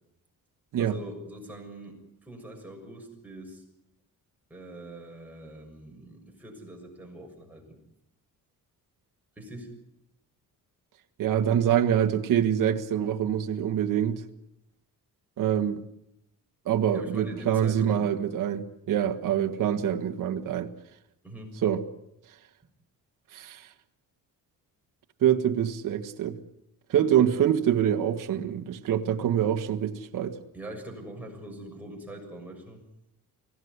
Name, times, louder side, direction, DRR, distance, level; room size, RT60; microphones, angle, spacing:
voice 1, 0.8-3.6 4.5-7.8 9.4-9.7 16.9-18.1 21.2-21.6 30.5-32.8, right 1 dB, 5° right, -1 dB, 6.8 m, -43 dB
voice 2, 11.2-14.2 15.4-15.8 16.6-20.7 21.6-21.8 23.3-23.7 25.2-26.4 26.9-30.4, right 9 dB, 60° right, 5 dB, 1.7 m, -25 dB
24.5 x 17.0 x 9.7 m, 0.81 s
cardioid pair, 145°, 36 cm